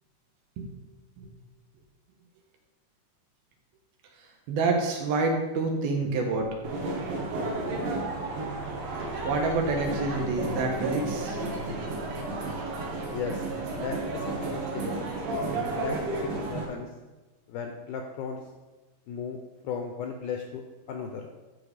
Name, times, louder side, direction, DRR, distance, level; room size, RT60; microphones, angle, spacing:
voice 1, 4.5-6.5 8.9-11.4, right 3 dB, 85° right, 1 dB, 3.1 m, -28 dB
sound 1, 6.6-16.6, right 2 dB, 65° right, 2.6 m, -32 dB
voice 2, 13.1-13.5 13.8-15.0 15.8-16.0 16.2-16.9 17.5-18.4 19.1-19.4 19.6-20.6 20.9-21.3, left 6 dB, 80° left, 3 dB, 1.8 m, -36 dB
12.0 x 4.3 x 4.9 m, 1.2 s
omnidirectional pair, 4.3 m